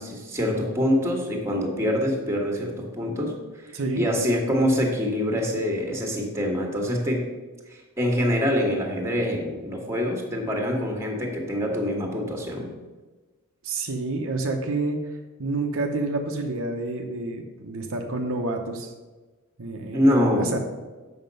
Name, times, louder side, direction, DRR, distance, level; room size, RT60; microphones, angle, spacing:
voice 1, 0.0-3.3 3.6-7.2 7.7-12.7 19.9-20.6, equal, 15° right, 1 dB, 1.6 m, -25 dB
voice 2, 3.7-4.0 13.6-15.0 15.4-18.9 19.6-20.6, right 2 dB, 65° right, 3 dB, 0.8 m, -28 dB
7.6 x 5.9 x 5.4 m, 1.2 s
head